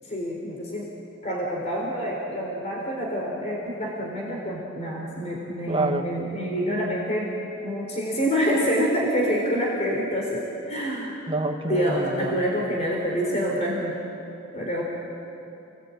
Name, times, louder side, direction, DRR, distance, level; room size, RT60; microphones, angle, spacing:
voice 1, 0.0-0.9 1.2-7.4 7.6-11.2 11.7-14.0 14.5-14.8, equal, 35° left, -2 dB, 4.0 m, -27 dB
voice 2, 5.7-6.1 11.3-12.4, right 2 dB, 25° right, 4 dB, 1.5 m, -27 dB
29.5 x 19.5 x 9.0 m, 2.8 s
head